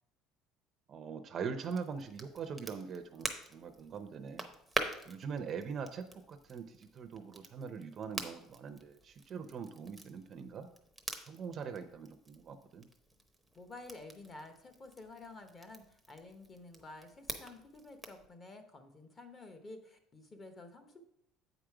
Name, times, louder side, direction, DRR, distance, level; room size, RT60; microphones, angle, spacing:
voice 1, 0.9-4.5 5.0-10.7 11.3-12.9, right 6 dB, 35° right, 9 dB, 0.6 m, -42 dB
Crackle, 1.6-18.3, right 1 dB, ahead, 0.8 m, -46 dB
voice 2, 13.5-21.0, left 2 dB, 25° left, 7 dB, 0.9 m, -51 dB
8.2 x 5.0 x 4.8 m, 0.74 s
cardioid pair, 145°, 0 cm